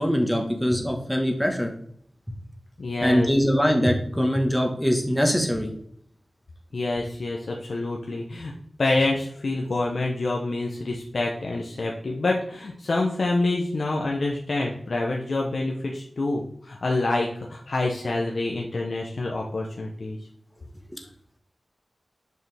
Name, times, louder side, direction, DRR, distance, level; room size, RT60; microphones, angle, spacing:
voice 1, 0.0-1.7 3.0-5.7, equal, ahead, 2 dB, 1.4 m, -22 dB
voice 2, 2.8-3.3 6.7-8.5 8.8-20.2, left 2 dB, 65° left, 0 dB, 0.9 m, -27 dB
6.8 x 6.4 x 3.4 m, 0.65 s
wide cardioid pair, 80°, 0 cm